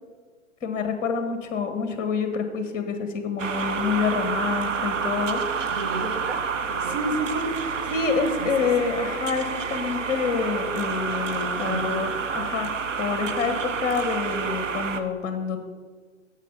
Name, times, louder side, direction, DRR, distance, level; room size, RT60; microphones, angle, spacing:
voice 1, 0.6-5.4 6.9-12.7 13.0-15.6, left 5 dB, 20° left, 7 dB, 1.3 m, -27 dB
sound 1, 3.4-15.0, right 6 dB, 75° right, 0.9 m, -29 dB
voice 2, 5.7-7.3 8.4-8.7 11.6-12.1, right 4 dB, 55° right, 4 dB, 1.5 m, -35 dB
9.0 x 7.4 x 5.7 m, 1.5 s
figure-of-eight pair, 120°, 38 cm